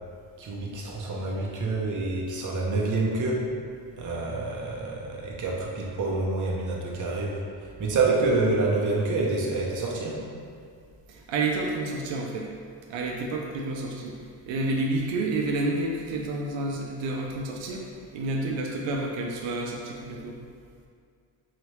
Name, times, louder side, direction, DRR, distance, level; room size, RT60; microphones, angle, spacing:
voice 1, 0.4-3.5 4.0-10.2, right 3 dB, 45° right, -2 dB, 0.8 m, -27 dB
voice 2, 11.1-12.5 12.9-14.2 14.5-20.4, right 2 dB, 85° right, 0 dB, 0.6 m, -29 dB
3.9 x 3.1 x 3.1 m, 2.2 s
cardioid pair, 105°, 44 cm